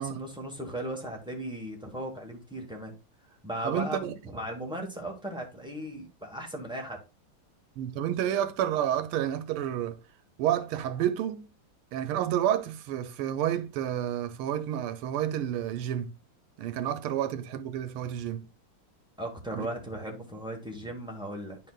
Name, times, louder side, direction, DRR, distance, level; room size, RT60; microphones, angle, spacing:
voice 1, 0.0-2.9 3.3-7.0 19.2-21.6, right 1 dB, 5° right, 0.6 m, -37 dB
voice 2, 3.7-4.1 7.8-10.0 10.4-11.5 11.9-16.1 16.6-18.5 19.5-19.7, right 11 dB, 90° right, 1.6 m, -30 dB
9.8 x 5.2 x 2.3 m
omnidirectional pair, 2.3 m